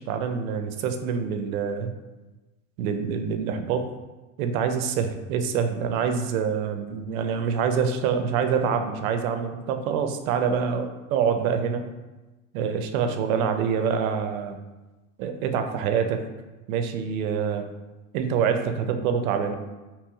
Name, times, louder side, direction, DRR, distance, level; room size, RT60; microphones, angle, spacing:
voice 1, 0.0-1.9 2.8-3.9 4.4-11.8 12.5-14.6 15.2-16.2 16.7-17.7 18.1-19.5, right 6 dB, 80° right, 7 dB, 0.5 m, -26 dB
2.9 x 2.9 x 2.2 m, 1.1 s
supercardioid pair, 130°, 42 cm